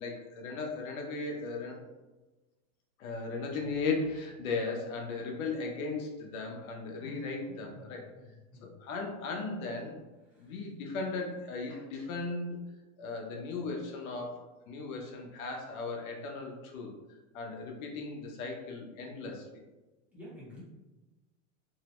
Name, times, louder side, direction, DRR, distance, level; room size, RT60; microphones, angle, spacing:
voice 1, 0.0-1.8 3.0-8.1 8.6-10.0 10.4-12.6 13.0-14.4 14.7-16.9 17.3-19.5, left 3 dB, 70° left, 2 dB, 0.7 m, -36 dB
voice 2, 7.0-8.6 10.3-10.5 20.1-20.6, equal, 5° right, -9 dB, 0.6 m, -49 dB
2.8 x 2.0 x 2.9 m, 1.1 s
supercardioid pair, 155°, 43 cm